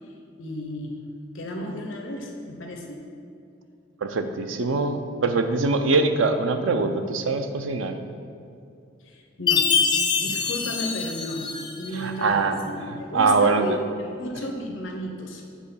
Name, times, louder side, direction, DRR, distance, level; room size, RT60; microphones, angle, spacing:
voice 1, 0.4-1.1 1.3-3.0 9.0-9.8 10.2-11.5 11.8-15.4, left 1 dB, 85° left, 2 dB, 0.8 m, -33 dB
voice 2, 4.0-8.0 11.9-12.6 12.9-13.8, right 3 dB, 90° right, 7 dB, 0.5 m, -23 dB
Chime, 9.5-12.0, left 6 dB, 25° left, 0.5 m, -24 dB
7.5 x 3.8 x 5.6 m, 2.5 s
head